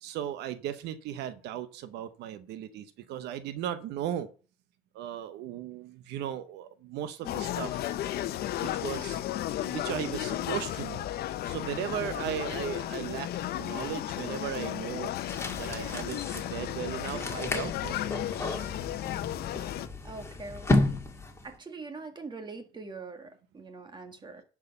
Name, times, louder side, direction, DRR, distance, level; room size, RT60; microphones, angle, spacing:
voice 1, 0.0-4.3 4.9-8.0 8.6-9.2 9.6-11.1 11.5-13.3 13.6-15.1 15.6-18.2, right 11 dB, 85° right, 0.9 m, -36 dB
sound 1, 7.2-19.9, left 13 dB, 70° left, 0.7 m, -34 dB
sound 2, 15.3-21.5, left 2 dB, 15° left, 2.0 m, -32 dB
voice 2, 17.1-17.4 20.0-21.1 21.4-24.4, right 3 dB, 25° right, 1.9 m, -43 dB
11.0 x 4.8 x 6.6 m
cardioid pair, 110°, 17 cm